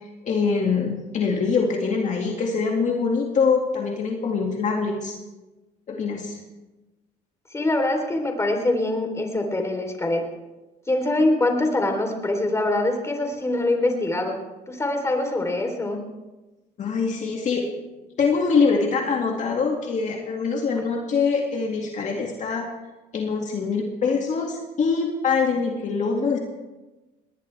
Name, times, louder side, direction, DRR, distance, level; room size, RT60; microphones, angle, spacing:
voice 1, 0.3-5.1 5.9-6.4 16.8-17.7 18.2-22.7 23.1-26.4, left 5 dB, 45° left, 0 dB, 2.3 m, -24 dB
voice 2, 7.5-10.2 10.9-14.4 14.7-16.0, left 2 dB, 15° left, 3 dB, 3.7 m, -24 dB
21.0 x 19.0 x 3.5 m, 1.1 s
cardioid pair, 110°, 17 cm